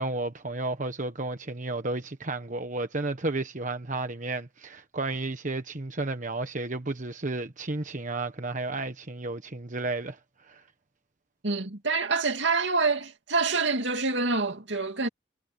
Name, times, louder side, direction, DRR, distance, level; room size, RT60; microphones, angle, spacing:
voice 1, 0.0-10.6, right 2 dB, 45° right, 1.2 m, -32 dB
voice 2, 11.4-15.1, right 4 dB, 75° right, 2.8 m, -26 dB
head